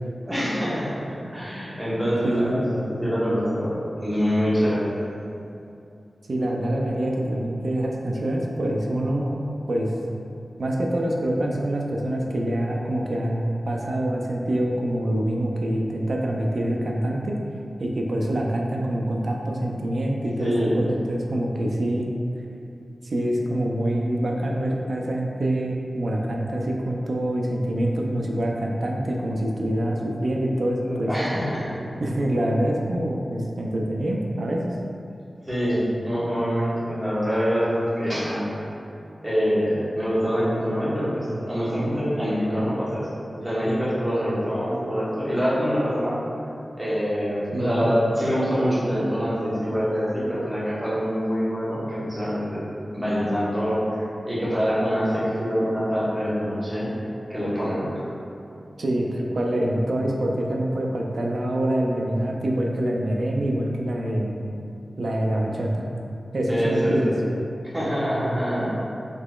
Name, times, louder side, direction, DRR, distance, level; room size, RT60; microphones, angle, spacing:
voice 1, 0.2-2.8 3.0-4.9 20.4-20.7 30.8-31.7 35.5-38.5 39.2-43.1 43.4-46.2 46.8-52.6 52.9-56.9 57.3-58.1 66.5-67.1 67.7-68.6, equal, 5° right, -10 dB, 1.1 m, -25 dB
voice 2, 2.2-2.7 6.3-9.4 9.7-9.9 10.6-17.4 17.8-22.1 23.0-31.1 32.0-34.7 47.5-47.9 58.8-64.3 65.0-65.8 66.3-67.1 68.5-68.7, right 1 dB, 70° right, -1 dB, 0.3 m, -25 dB
3.8 x 2.9 x 2.3 m, 2.7 s
wide cardioid pair, 100°, 0 cm